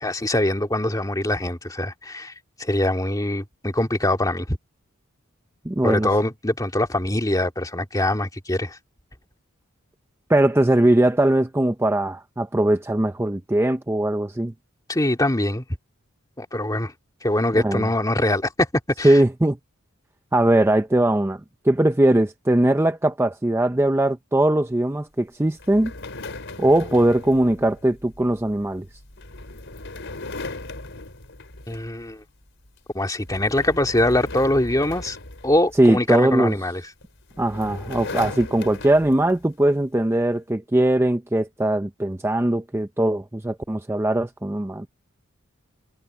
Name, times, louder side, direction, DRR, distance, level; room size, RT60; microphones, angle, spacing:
voice 1, 0.0-2.3 2.6-4.6 5.8-8.8 14.9-15.6 16.4-16.9 17.2-18.7 19.0-19.2 31.7-32.2 32.9-35.2 35.4-36.8, left 1 dB, 15° left, 2.2 m, -23 dB
voice 2, 5.6-6.1 10.3-14.5 17.6-17.9 19.0-19.6 20.3-25.9 26.6-28.9 35.8-36.5 37.4-44.9, right 1 dB, 10° right, 0.5 m, -20 dB
sound 1, 25.6-32.1 32.5-32.8 33.2-36.2 37.0-39.5, left 2 dB, 60° left, 4.9 m, -37 dB
head